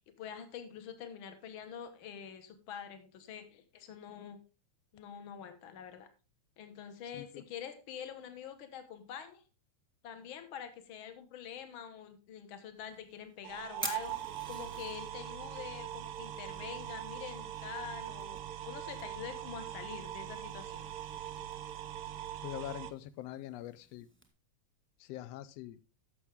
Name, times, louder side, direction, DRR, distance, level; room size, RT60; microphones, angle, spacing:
voice 1, 0.2-4.4 4.9-6.1 6.6-9.4 10.0-14.2 14.5-20.9, left 8 dB, 50° left, 1.8 m, -46 dB
Fire, 12.8-24.3, right 2 dB, 5° right, 1.1 m, -50 dB
sound 1, 13.4-22.9, right 12 dB, 70° right, 1.4 m, -42 dB
voice 2, 22.4-24.1 25.0-25.8, left 13 dB, 75° left, 1.6 m, -43 dB
12.0 x 7.1 x 3.5 m
omnidirectional pair, 3.3 m